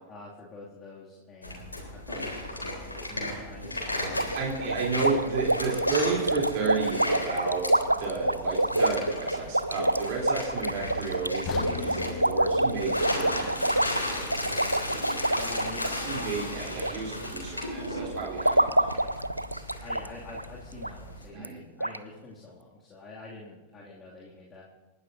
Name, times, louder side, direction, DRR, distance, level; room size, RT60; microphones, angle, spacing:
voice 1, 0.1-4.3 4.6-5.2 5.6-6.0 15.3-16.2 19.8-24.6, left 2 dB, 20° left, -5 dB, 2.6 m, -46 dB
sound 1, 1.4-21.2, left 1 dB, 80° left, 3.9 m, -36 dB
sound 2, 4.2-16.9 17.2-17.6 18.1-20.1 20.3-20.4 20.8-20.9 21.4-21.5 21.8-22.0, right 1 dB, 85° right, 0.5 m, -27 dB
voice 2, 4.3-7.7 8.0-13.9 16.0-19.0 21.3-21.6, right 4 dB, 45° right, -2 dB, 3.6 m, -32 dB
sound 3, 11.5-15.5 15.9-16.0 16.6-16.7, left 10 dB, 35° left, 1.0 m, -41 dB
28.5 x 12.5 x 2.8 m, 1.2 s
figure-of-eight pair, 90°, 0 cm